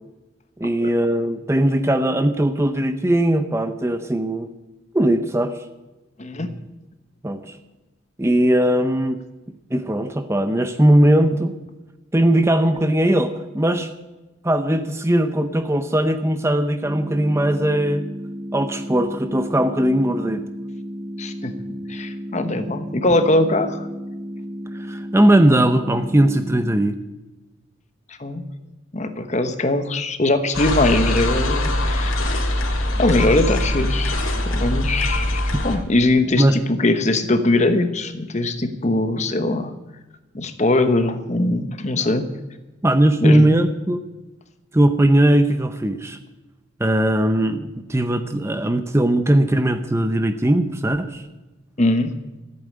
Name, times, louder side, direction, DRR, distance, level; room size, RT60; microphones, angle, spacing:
voice 1, 0.6-4.5 4.9-5.6 7.2-7.6 8.2-9.2 9.7-11.6 12.1-13.9 14.4-18.1 18.5-20.4 24.7-27.0 36.3-36.6 42.8-44.0 44.7-46.2 46.8-51.2, right 1 dB, 15° right, 9 dB, 0.6 m, -19 dB
voice 2, 6.2-6.5 21.2-21.5 21.9-23.8 28.1-28.4 28.9-32.5 33.0-39.7 40.3-42.3 43.2-43.6 51.8-52.1, left 2 dB, 35° left, 9 dB, 1.1 m, -21 dB
sound 1, 16.8-26.8, equal, 40° right, 1.9 m, -33 dB
sound 2, 30.5-35.8, left 1 dB, 90° left, 2.5 m, -22 dB
14.5 x 8.7 x 8.6 m, 1.1 s
head